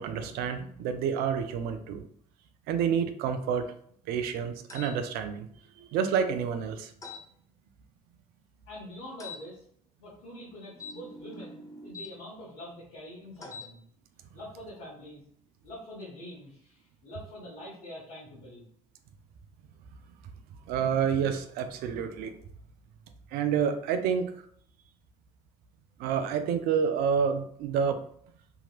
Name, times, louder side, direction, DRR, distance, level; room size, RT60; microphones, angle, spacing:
voice 1, 0.0-2.1 2.7-3.7 4.1-5.5 5.8-6.9 20.7-22.4 23.3-24.3 26.0-28.0, right 7 dB, 55° right, 9 dB, 0.4 m, -28 dB
sound 1, 4.7-5.0 7.0-7.2 9.2-9.4 10.7-12.1 13.4-13.7, left 3 dB, 15° left, 0.6 m, -43 dB
voice 2, 8.7-9.6 10.0-13.8 14.3-15.2 15.6-18.7, left 1 dB, 60° left, -7 dB, 1.0 m, -45 dB
2.9 x 2.8 x 2.4 m, 0.63 s
figure-of-eight pair, 50°, 18 cm